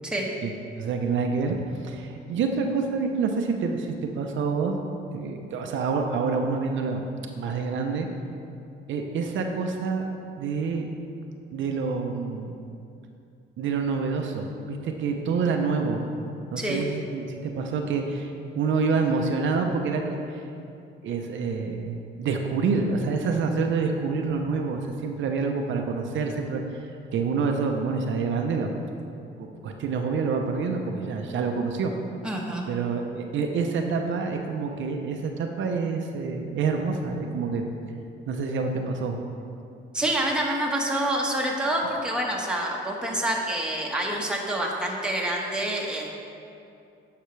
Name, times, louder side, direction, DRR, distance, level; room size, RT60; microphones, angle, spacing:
voice 1, 0.8-4.8 5.1-7.1 7.4-8.1 8.9-10.1 10.4-10.9 11.5-12.6 13.6-16.1 16.5-20.4 21.0-26.6 27.1-28.7 29.4-31.9 32.7-37.7 38.3-39.2, right 4 dB, 75° right, 3 dB, 0.7 m, -27 dB
voice 2, 16.6-16.9 32.2-32.6 39.9-46.1, right 1 dB, 5° right, -2 dB, 1.3 m, -27 dB
9.9 x 5.8 x 3.2 m, 2.6 s
cardioid pair, 90°, 20 cm